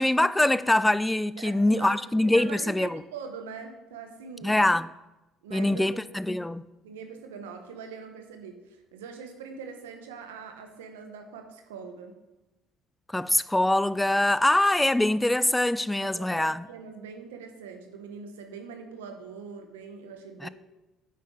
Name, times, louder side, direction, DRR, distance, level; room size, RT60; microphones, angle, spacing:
voice 1, 0.0-3.0 4.4-4.9 5.5-6.7 13.1-16.6 20.4-20.5, left 1 dB, 10° left, 0.4 m, -23 dB
voice 2, 1.4-4.6 5.4-6.4 6.8-12.2 16.0-20.5, right 5 dB, 85° right, 1.2 m, -43 dB
9.8 x 8.7 x 3.9 m
hypercardioid pair, 60°, 0 cm